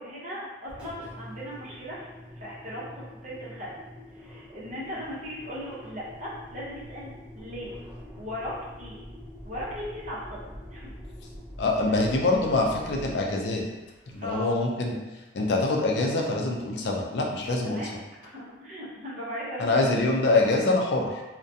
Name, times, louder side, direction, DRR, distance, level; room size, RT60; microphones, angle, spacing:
voice 1, 0.0-3.7 4.1-7.7 8.2-9.0 9.4-10.9 14.2-14.6 17.4-19.9, equal, 45° right, -7 dB, 0.7 m, -38 dB
Engine, 0.6-14.6, equal, 5° right, 0.5 m, -45 dB
voice 2, 11.6-13.6 14.1-14.9 15.3-17.8 19.6-21.2, left 2 dB, 75° left, 0 dB, 0.4 m, -24 dB
2.4 x 2.1 x 2.6 m, 1.1 s
head